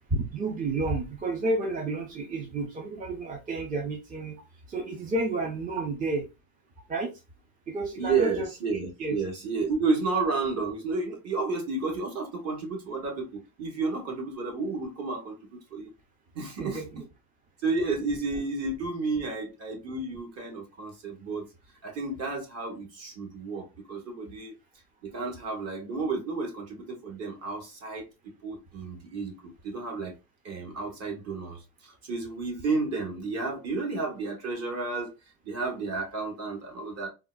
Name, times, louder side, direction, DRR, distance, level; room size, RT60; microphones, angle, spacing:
voice 1, 0.1-4.4 4.7-6.2 6.9-7.1 7.7-8.5 9.0-9.2 16.6-17.0, right 2 dB, 25° right, 0.5 m, -31 dB
voice 2, 8.0-15.9 16.3-16.8 17.6-21.5 21.8-24.5 25.0-28.1 28.4-30.1 30.4-35.1 35.4-37.1, right 4 dB, 45° right, 1.3 m, -31 dB
3.7 x 2.2 x 2.3 m
cardioid pair, 130°, 35 cm